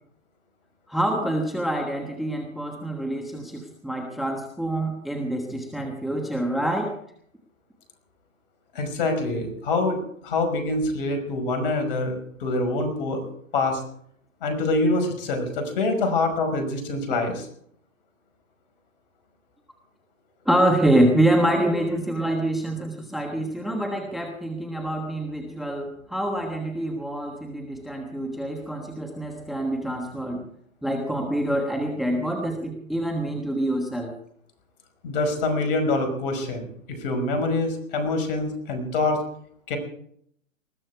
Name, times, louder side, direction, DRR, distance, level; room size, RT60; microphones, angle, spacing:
voice 1, 0.9-6.9 20.4-30.4 30.8-34.1, right 1 dB, ahead, 3 dB, 1.3 m, -26 dB
voice 2, 8.7-13.2 13.5-13.8 14.4-17.5 35.0-39.2 39.7-39.8, left 2 dB, 45° left, 6 dB, 5.5 m, -25 dB
20.5 x 14.5 x 4.7 m, 0.67 s
hypercardioid pair, 140°, 40 cm